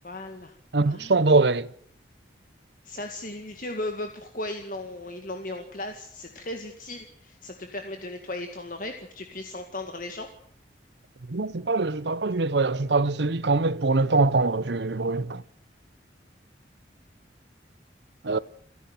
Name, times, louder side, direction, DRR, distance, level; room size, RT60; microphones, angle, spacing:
voice 1, 0.0-0.5 0.8-1.4 2.8-10.3, left 1 dB, 45° left, 2.1 m, -36 dB
voice 2, 0.7-1.7 11.3-15.4 18.2-18.4, right 3 dB, 70° right, 0.8 m, -23 dB
29.5 x 11.0 x 9.4 m
head